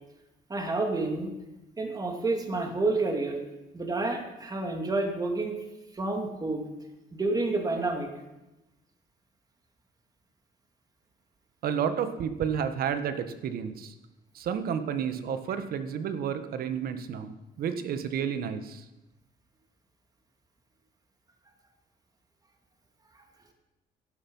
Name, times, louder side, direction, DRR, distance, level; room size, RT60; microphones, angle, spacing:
voice 1, 0.5-1.3 1.8-3.4 3.7-5.5 5.9-6.7 7.1-8.1, right 2 dB, 20° right, 3 dB, 2.6 m, -29 dB
voice 2, 11.6-13.9 14.3-18.8, right 7 dB, 60° right, 10 dB, 1.5 m, -31 dB
15.5 x 12.0 x 5.6 m, 0.98 s
cardioid pair, 110°, 17 cm